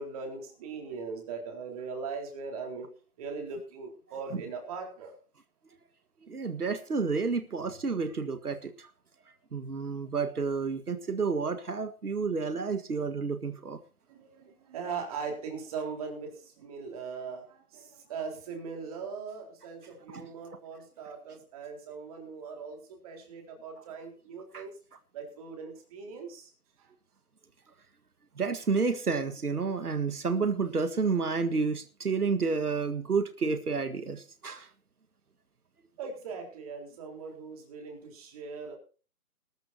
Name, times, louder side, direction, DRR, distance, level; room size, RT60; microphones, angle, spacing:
voice 1, 0.0-2.9 3.2-5.1 14.1-24.7 25.1-26.5 26.8-26.9 36.0-38.8, right 5 dB, 25° right, 3 dB, 4.0 m, -40 dB
voice 2, 6.2-8.9 9.5-13.8 20.1-20.3 24.5-24.6 28.4-34.7, right 4 dB, 85° right, 10 dB, 1.8 m, -30 dB
20.5 x 13.0 x 2.8 m, 0.37 s
figure-of-eight pair, 160°, 44 cm